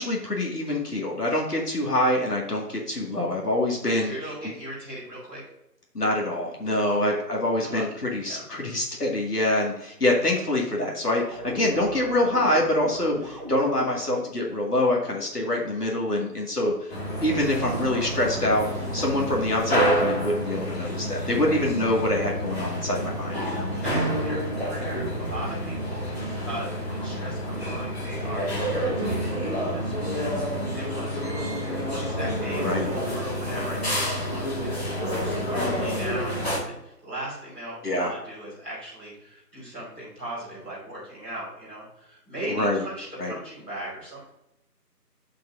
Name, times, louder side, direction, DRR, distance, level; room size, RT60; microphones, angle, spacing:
voice 1, 0.0-4.1 4.4-4.5 5.9-16.9 17.2-18.7 18.9-23.7 32.6-32.9 37.8-38.1 42.5-42.8 43.2-43.3, left 1 dB, 70° left, -1 dB, 2.2 m, -25 dB
voice 2, 4.0-5.4 6.8-7.0 7.6-7.8 8.2-8.5 21.4-21.9 23.3-44.3, right 1 dB, 5° left, -18 dB, 2.8 m, -38 dB
sound 1, 11.2-14.4, left 1 dB, 25° right, 1.1 m, -38 dB
sound 2, 16.9-36.6, equal, 40° left, 2.0 m, -28 dB
10.5 x 5.3 x 2.6 m, 0.85 s
figure-of-eight pair, 165°, 48 cm